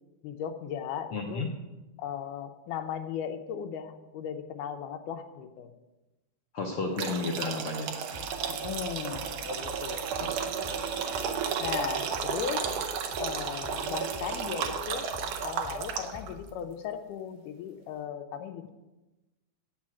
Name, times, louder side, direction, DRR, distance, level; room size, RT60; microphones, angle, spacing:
voice 1, 0.2-1.5 2.0-5.7 8.5-10.1 11.1-12.7 13.2-15.1 15.4-18.7, left 8 dB, 90° left, 6 dB, 2.2 m, -37 dB
voice 2, 1.1-1.5 6.5-7.9 10.2-10.3, left 3 dB, 70° left, 1 dB, 1.3 m, -32 dB
sound 1, 7.0-16.3, right 7 dB, 80° right, 2.4 m, -33 dB
sound 2, 8.1-16.6, left 2 dB, 35° left, 1.0 m, -47 dB
8.7 x 6.2 x 7.5 m, 1.1 s
omnidirectional pair, 3.6 m